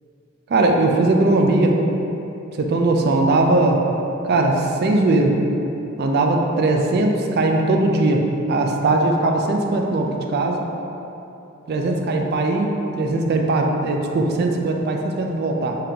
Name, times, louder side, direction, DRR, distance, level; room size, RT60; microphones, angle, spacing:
voice 1, 0.5-1.8 2.6-3.8 4.3-5.4 6.0-10.6 11.7-12.7 13.0-15.8, right 2 dB, 45° right, 2 dB, 0.3 m, -19 dB
3.6 x 2.8 x 3.7 m, 2.9 s
head